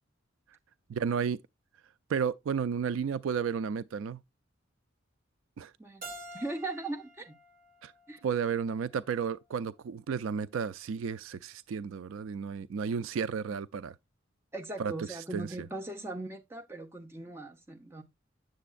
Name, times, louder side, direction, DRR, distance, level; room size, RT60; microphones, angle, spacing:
voice 1, 0.9-1.4 2.1-4.2 5.6-5.7 7.8-7.9 8.2-13.9 14.8-15.7, right 6 dB, 75° right, 0.4 m, -33 dB
Keyboard (musical), 6.0-8.8, right 1 dB, 45° right, 2.8 m, -48 dB
voice 2, 6.3-7.3 8.1-8.2 14.5-18.0, right 2 dB, 10° right, 1.0 m, -39 dB
7.7 x 6.9 x 2.4 m
head